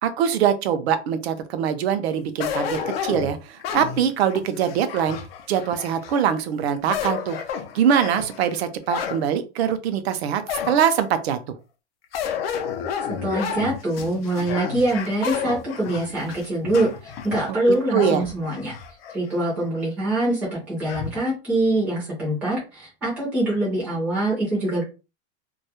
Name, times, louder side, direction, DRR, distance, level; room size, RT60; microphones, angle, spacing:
voice 1, 0.0-5.2 5.5-7.4 7.7-11.4 17.5-17.6 17.9-18.2, right 8 dB, 65° right, 10 dB, 0.5 m, -23 dB
sound 1, 2.4-6.2 6.7-9.2 9.7-9.8 10.5-11.1 12.1-19.2 19.6-19.7 20.9-21.2, left 7 dB, 55° left, 0.5 m, -31 dB
voice 2, 13.2-18.7 19.1-24.8, right 1 dB, 5° right, -7 dB, 0.4 m, -24 dB
2.2 x 2.0 x 2.8 m, 0.30 s
supercardioid pair, 175°, 35 cm